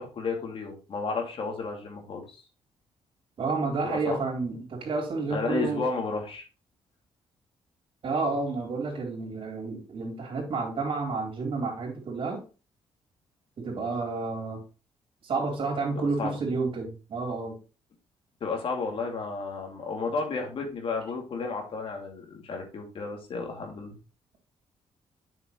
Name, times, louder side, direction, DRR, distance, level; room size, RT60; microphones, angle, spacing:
voice 1, 0.0-2.3 3.8-4.2 5.3-6.4 15.9-16.3 18.4-24.0, left 4 dB, 55° left, 2 dB, 2.7 m, -32 dB
voice 2, 3.4-5.8 8.0-12.4 13.6-14.6 15.2-17.6, right 3 dB, 55° right, 0 dB, 3.9 m, -30 dB
7.9 x 6.5 x 3.1 m, 0.33 s
cardioid pair, 90°, 11 cm